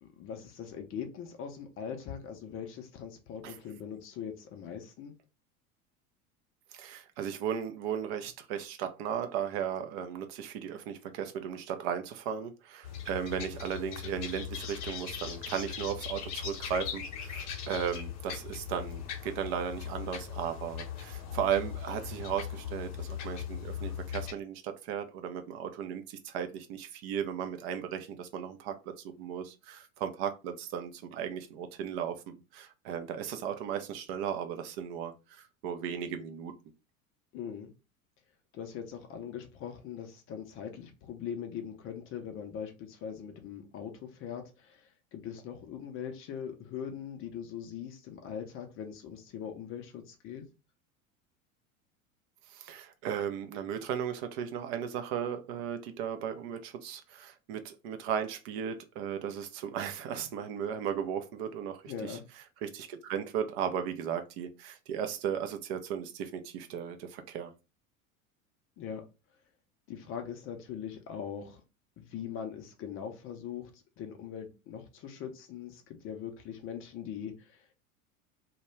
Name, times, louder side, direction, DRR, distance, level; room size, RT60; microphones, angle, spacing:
voice 1, 0.0-5.1 37.3-37.7 38.5-50.4 61.9-62.2 68.8-69.0 69.9-71.6 72.0-77.7, left 8 dB, 30° left, 0.5 m, -41 dB
voice 2, 6.7-36.5 52.5-62.2 62.6-67.5, right 8 dB, 45° right, 0.5 m, -36 dB
sound 1, 12.8-24.3, left 8 dB, 55° left, 0.8 m, -39 dB
2.2 x 2.1 x 3.0 m
figure-of-eight pair, 80°, 43 cm